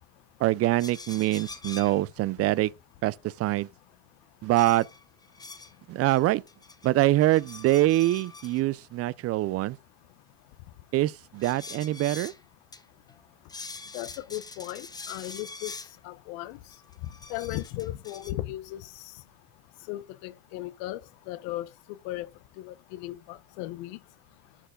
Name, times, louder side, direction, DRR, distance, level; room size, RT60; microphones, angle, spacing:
voice 1, 0.4-2.7 3.0-3.7 4.4-4.9 5.9-6.4 6.8-9.8 10.9-12.3, right 16 dB, 40° right, 0.4 m, -24 dB
sound 1, 0.8-2.0 4.6-5.7 6.1-6.9 7.2-8.6 11.4-12.4 12.7-12.8 13.1-13.2 13.5-15.9 16.7-18.3, left 3 dB, 10° left, 0.7 m, -44 dB
voice 2, 13.9-15.8 16.0-16.6 17.3-18.8 19.9-21.0 21.3-21.7 22.0-22.3 22.6-24.0, left 16 dB, 75° left, 0.9 m, -36 dB
11.5 x 4.4 x 3.7 m
cardioid pair, 125°, 38 cm